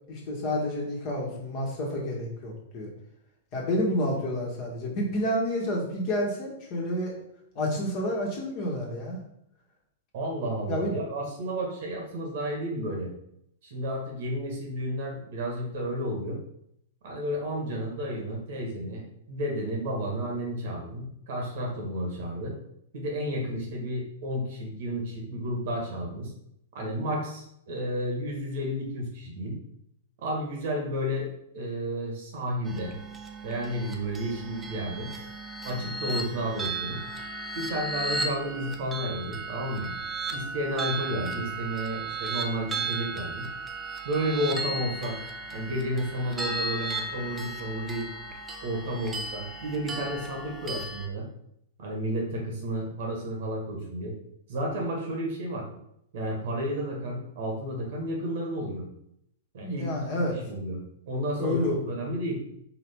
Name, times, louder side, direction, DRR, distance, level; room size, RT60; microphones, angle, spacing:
voice 1, 0.1-2.9 3.5-7.1 7.5-9.2 10.7-10.9 59.6-60.4 61.4-61.9, left 1 dB, 40° left, -2 dB, 1.4 m, -29 dB
voice 2, 10.1-13.1 13.6-16.4 17.0-22.5 22.9-26.3 26.7-29.6 30.2-32.9 33.4-35.1 35.6-37.0 37.5-39.9 40.3-43.5 44.0-45.2 45.5-48.1 48.6-51.3 51.8-54.1 54.5-55.7 56.1-58.8 59.5-60.0 60.3-62.4, equal, 55° right, 0 dB, 1.4 m, -32 dB
sound 1, 32.7-51.1, right 3 dB, 10° right, 0.6 m, -35 dB
4.8 x 2.9 x 3.5 m, 0.74 s
figure-of-eight pair, 100°, 0 cm